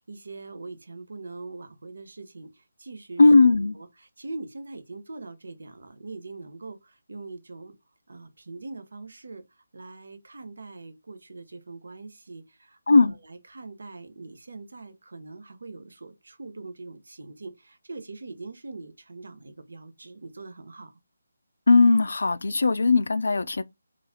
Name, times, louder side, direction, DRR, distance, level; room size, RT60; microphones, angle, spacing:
voice 1, 0.0-3.2 3.7-7.7 8.1-21.0, right 3 dB, 70° right, 0.9 m, -42 dB
voice 2, 3.2-3.8 12.9-13.1 21.7-23.6, left 3 dB, 60° left, 0.3 m, -18 dB
3.9 x 2.4 x 2.7 m
hypercardioid pair, 180°, 0 cm